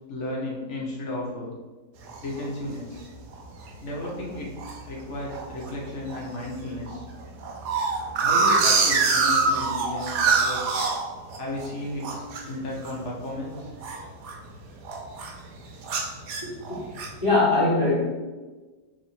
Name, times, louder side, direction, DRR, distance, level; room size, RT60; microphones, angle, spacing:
voice 1, 0.1-1.5 2.2-3.0 3.8-4.6 4.8-7.0 8.2-10.6 11.3-13.7, left 1 dB, 55° left, -3 dB, 0.9 m, -34 dB
sound 1, 2.1-2.5 3.0-3.1 3.3-3.7 4.0-4.8 5.3-5.7 6.1-6.2 6.4-6.5 6.9-11.7 12.0-14.5 14.8-15.4 15.8-17.2, right 4 dB, 80° right, 1.2 m, -25 dB
voice 2, 16.4-16.8 17.2-18.0, left 2 dB, 20° left, -9 dB, 1.3 m, -22 dB
3.0 x 3.0 x 4.1 m, 1.3 s
omnidirectional pair, 1.8 m